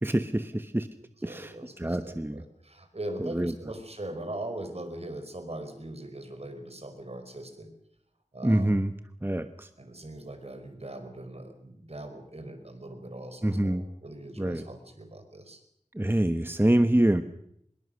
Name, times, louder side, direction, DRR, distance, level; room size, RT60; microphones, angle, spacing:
voice 1, 0.0-0.9 1.2-2.5 3.2-3.5 8.4-8.9 9.2-9.7 13.4-13.8 14.4-14.6 15.9-17.2, right 1 dB, 15° right, 9 dB, 1.2 m, -26 dB
voice 2, 1.2-7.7 8.3-8.7 9.8-15.6, right 1 dB, 55° right, 7 dB, 4.9 m, -40 dB
25.5 x 21.5 x 6.6 m, 0.71 s
wide cardioid pair, 45°, 13 cm